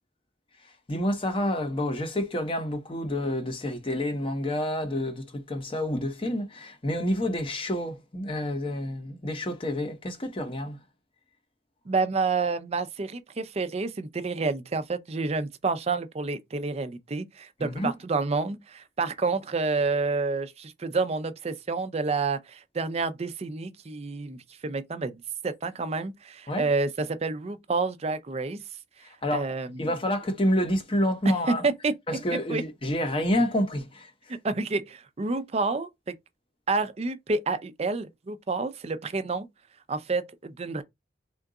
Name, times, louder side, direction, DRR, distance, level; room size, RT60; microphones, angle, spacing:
voice 1, 0.9-10.8 17.6-17.9 26.5-26.7 29.0-29.5 29.8-31.7 32.1-34.1, left 1 dB, 30° left, 0.7 m, -28 dB
voice 2, 11.9-28.6 29.3-29.9 31.3-31.9 32.3-32.6 34.4-35.9 36.7-39.5 39.9-40.8, right 3 dB, 35° right, 0.5 m, -29 dB
3.7 x 2.3 x 3.7 m
head